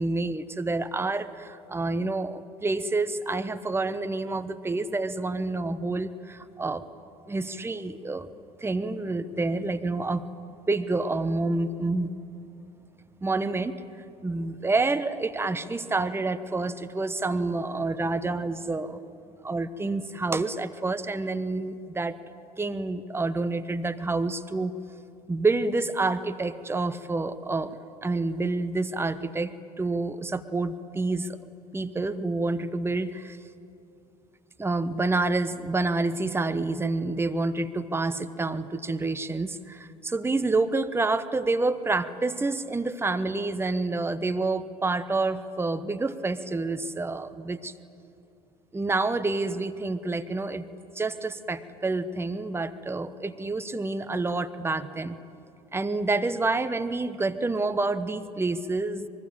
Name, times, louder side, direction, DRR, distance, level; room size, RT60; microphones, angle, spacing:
voice 1, 0.0-6.8 7.3-8.3 8.6-10.2 10.5-12.1 13.2-13.7 14.2-19.0 19.4-22.2 22.6-24.7 25.3-27.8 28.0-31.4 31.7-33.4 34.6-47.7 48.7-50.6 50.9-55.2 55.7-59.1, right 3 dB, 10° right, 11 dB, 1.1 m, -28 dB
24.5 x 22.5 x 8.8 m, 2.7 s
hypercardioid pair, 65°, 19 cm